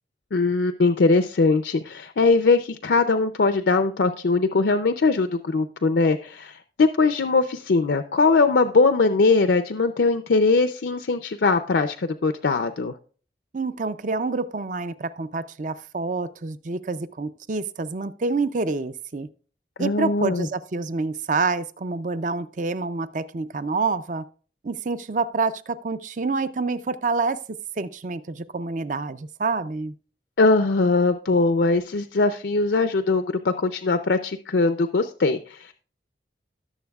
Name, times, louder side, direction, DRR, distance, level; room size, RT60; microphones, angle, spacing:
voice 1, 0.3-12.9 19.8-20.5 30.4-35.7, left 3 dB, 75° left, 0.5 m, -21 dB
voice 2, 13.5-19.3 19.8-24.2 24.6-29.9, right 3 dB, 45° right, 0.5 m, -27 dB
18.0 x 7.1 x 2.3 m
head